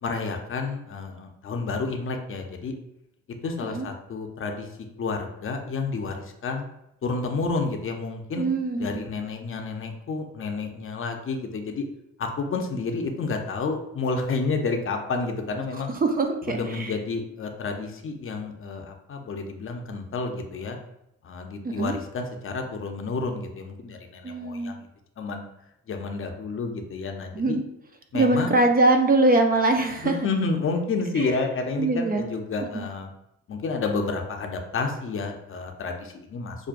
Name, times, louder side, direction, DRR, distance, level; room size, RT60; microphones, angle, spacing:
voice 1, 0.0-2.7 3.4-4.7 5.0-6.7 7.0-8.5 8.8-11.8 12.2-15.9 16.5-20.8 21.2-24.9 25.2-25.4 25.9-27.6 28.1-28.6 30.0-33.1 33.5-36.6, left 4 dB, 45° left, 4 dB, 0.6 m, -30 dB
voice 2, 8.4-8.9 15.7-16.9 21.6-22.0 24.2-24.7 27.3-27.6 28.1-30.2 31.2-31.3 31.8-32.3 32.7-32.8, right 2 dB, 30° right, 4 dB, 0.5 m, -23 dB
5.9 x 2.2 x 2.5 m, 0.81 s
cardioid pair, 90°, 30 cm